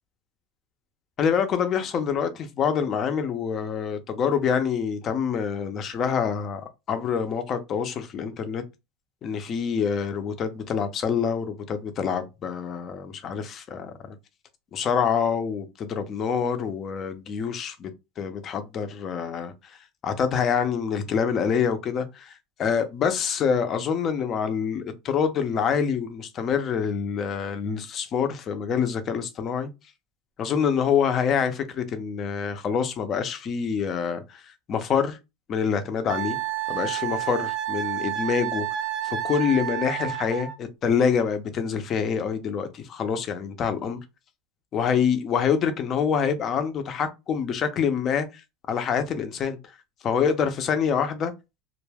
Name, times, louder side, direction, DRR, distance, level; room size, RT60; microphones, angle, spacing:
voice 1, 1.2-6.6 6.9-8.6 9.2-14.2 14.7-17.9 18.2-29.7 30.4-35.2 35.5-36.4 36.7-38.7 39.0-44.0 44.7-48.4 48.7-49.6 50.0-51.3, left 7 dB, 35° left, 0.6 m, -26 dB
Wind instrument woodwind instrument, 36.1-40.6, right 12 dB, 45° right, 0.4 m, -30 dB
2.2 x 2.1 x 3.3 m
supercardioid pair, 125°, 0 cm